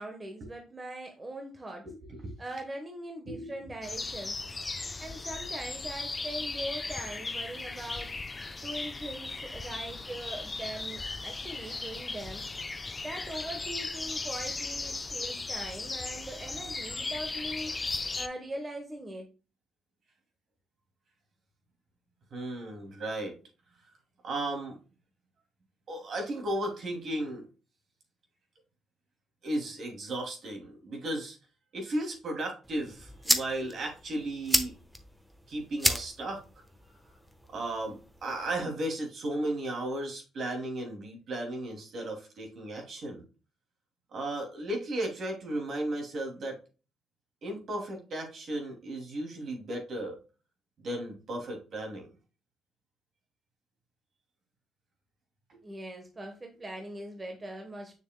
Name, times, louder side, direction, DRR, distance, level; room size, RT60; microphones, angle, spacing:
voice 1, 0.0-1.9 2.4-4.4 5.0-8.1 8.6-12.4 13.0-17.7 18.2-19.3 55.6-58.0, right 1 dB, 25° right, 3 dB, 1.1 m, -41 dB
voice 2, 1.8-2.4 3.3-3.7 4.8-4.9 22.3-23.4 24.2-24.8 25.9-27.5 29.4-31.4 31.7-34.7 35.5-36.4 37.5-43.2 44.1-46.6 47.4-50.2 50.8-52.1 55.5-55.6, right 1 dB, 55° right, 2 dB, 2.5 m, -35 dB
sound 1, 3.8-18.3, left 3 dB, 25° left, 0.6 m, -37 dB
sound 2, 32.6-38.6, equal, 5° right, 1.0 m, -33 dB
6.7 x 6.6 x 2.2 m, 0.33 s
cardioid pair, 90°, 0 cm